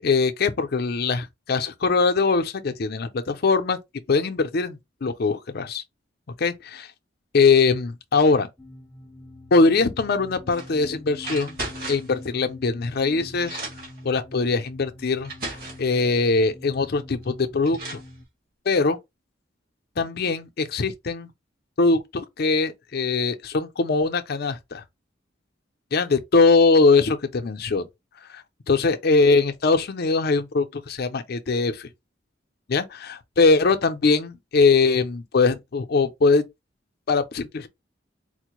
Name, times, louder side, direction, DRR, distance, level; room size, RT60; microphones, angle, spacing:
voice 1, 0.0-3.8 4.1-5.8 6.4-6.9 7.3-8.5 9.5-11.6 11.9-13.6 14.0-15.3 15.8-18.0 18.7-19.0 20.0-21.3 21.8-24.8 25.9-27.9 28.3-31.9 32.7-36.4 37.1-37.7, left 4 dB, 55° left, 0.5 m, -21 dB
sound 1, 8.6-18.2, left 1 dB, 5° left, 0.6 m, -44 dB
sound 2, 10.5-10.7 11.2-12.2 13.0-13.1 13.4-14.0 14.8-14.9 15.2-15.9 17.2-17.3 17.6-18.1, right 2 dB, 55° right, 1.7 m, -35 dB
4.3 x 2.1 x 3.0 m
head